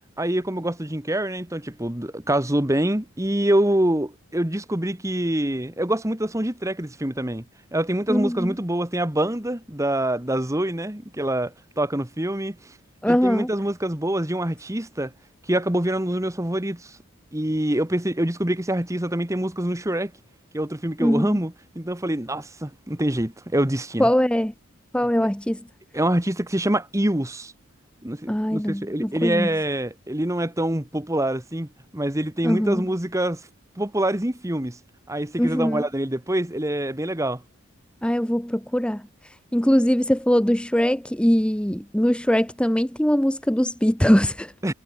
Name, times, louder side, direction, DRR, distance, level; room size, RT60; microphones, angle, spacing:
voice 1, 0.2-7.4 7.7-12.6 13.1-15.1 15.5-17.0 17.3-20.1 20.5-24.1 25.9-27.5 28.0-33.4 33.8-34.8 35.1-37.4 44.6-44.7, right 1 dB, 15° right, 1.5 m, -25 dB
voice 2, 8.1-8.5 13.0-13.5 21.0-21.4 24.0-24.5 24.9-25.6 28.3-29.5 32.4-32.8 35.4-35.8 38.0-44.5, equal, 5° left, 0.9 m, -22 dB
head